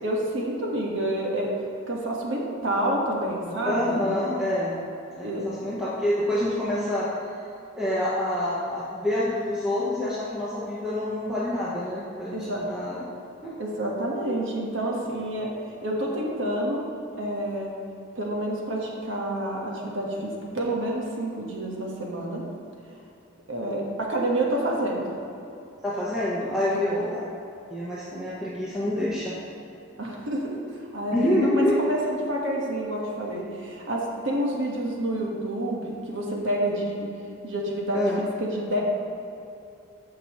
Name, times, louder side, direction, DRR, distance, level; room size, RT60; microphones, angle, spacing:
voice 1, 0.0-1.5 1.9-4.1 5.2-5.4 12.3-12.6 13.6-16.8 17.2-17.7 18.1-22.4 23.5-25.1 26.7-27.0 30.0-30.6 30.9-37.1 37.4-38.8, right 1 dB, 60° right, -2 dB, 1.4 m, -28 dB
voice 2, 3.6-4.7 5.2-7.1 7.7-13.0 13.4-13.6 25.8-27.2 27.7-29.3 31.1-31.8 37.9-38.2, left 1 dB, 5° right, -9 dB, 1.0 m, -27 dB
15.0 x 5.5 x 3.1 m, 2.8 s
head